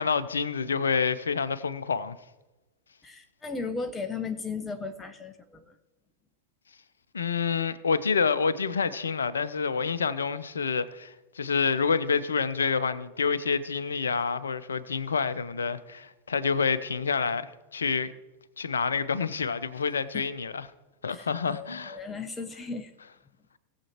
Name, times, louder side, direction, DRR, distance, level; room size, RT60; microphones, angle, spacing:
voice 1, 0.0-2.2 7.1-18.1 18.6-20.7 21.0-22.0, left 5 dB, 70° left, 0.6 m, -28 dB
voice 2, 3.0-5.8 20.1-20.2 21.1-22.9, left 4 dB, 15° left, 0.9 m, -36 dB
19.0 x 7.4 x 2.9 m
figure-of-eight pair, 90°, 0 cm